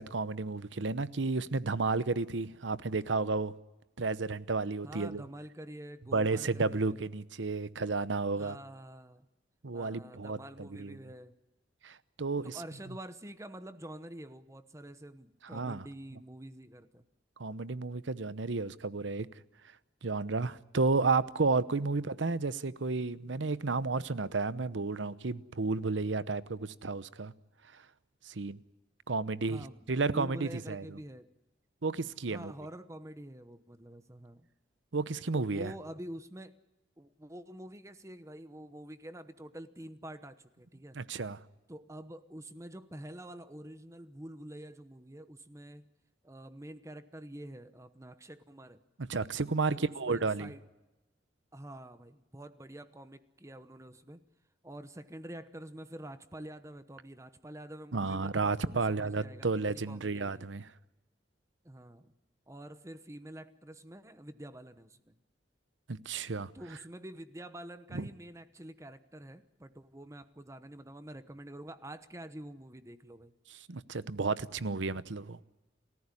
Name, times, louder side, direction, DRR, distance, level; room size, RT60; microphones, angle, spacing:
voice 1, 0.0-3.5 4.0-5.2 6.1-8.6 9.6-11.0 11.8-12.6 15.5-15.9 17.4-19.3 20.0-27.3 27.7-27.8 28.2-28.6 29.1-31.0 31.8-32.5 34.9-35.7 40.9-41.4 49.0-50.5 57.9-60.7 65.9-66.5 67.9-68.1 73.7-75.4, right 3 dB, 85° right, 16 dB, 0.9 m, -32 dB
voice 2, 4.8-7.0 8.3-9.3 9.7-11.4 12.4-17.0 22.0-22.2 29.4-31.3 32.3-34.5 35.3-36.6 37.0-41.0 41.7-45.8 46.2-48.8 49.7-50.6 51.5-54.2 54.6-58.6 58.9-60.5 61.6-62.1 62.5-65.1 66.5-73.3, right 1 dB, 15° right, 12 dB, 0.9 m, -47 dB
29.5 x 14.5 x 9.8 m, 1.0 s
head